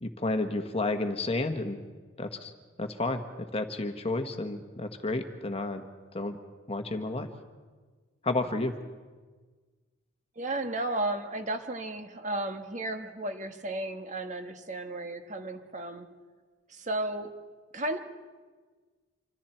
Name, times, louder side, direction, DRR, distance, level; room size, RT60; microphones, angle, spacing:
voice 1, 0.0-1.8 2.2-2.5 2.8-3.2 3.5-5.8 6.1-6.4 6.7-7.3 8.2-8.7, left 2 dB, 30° left, 6 dB, 1.3 m, -31 dB
voice 2, 10.4-16.1 16.7-17.3 17.7-18.0, right 2 dB, 35° right, 6 dB, 1.4 m, -34 dB
27.0 x 25.5 x 4.5 m, 1.4 s
head